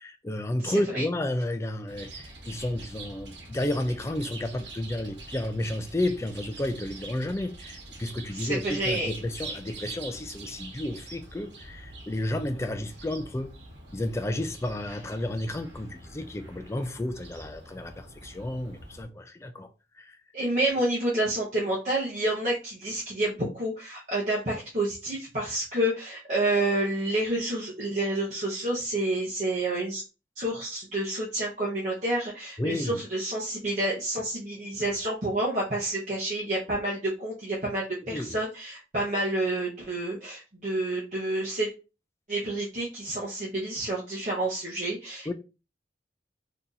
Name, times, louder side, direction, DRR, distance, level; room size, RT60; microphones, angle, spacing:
voice 1, 0.0-13.5 13.9-20.2 32.6-33.0 38.1-38.4 45.3-45.4, left 1 dB, 15° left, 0.3 m, -32 dB
voice 2, 0.6-1.0 8.3-9.1 20.3-30.0 30.4-41.7 42.3-45.3, right 1 dB, 45° right, 0.8 m, -29 dB
Chirp tweet, 1.9-19.0, right 2 dB, 85° right, 1.1 m, -44 dB
2.8 x 2.5 x 3.8 m
head